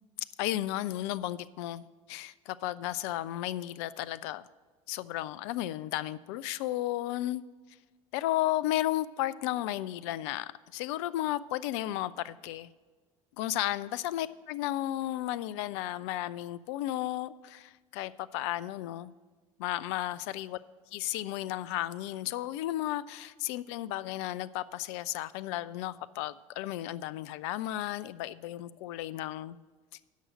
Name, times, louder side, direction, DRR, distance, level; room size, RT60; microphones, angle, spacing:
voice 1, 0.4-4.5 4.9-7.4 8.1-12.7 13.4-19.1 19.6-20.6 20.9-29.6, left 14 dB, 55° left, 17 dB, 0.4 m, -34 dB
10.5 x 6.2 x 6.4 m, 1.4 s
figure-of-eight pair, 65°, 18 cm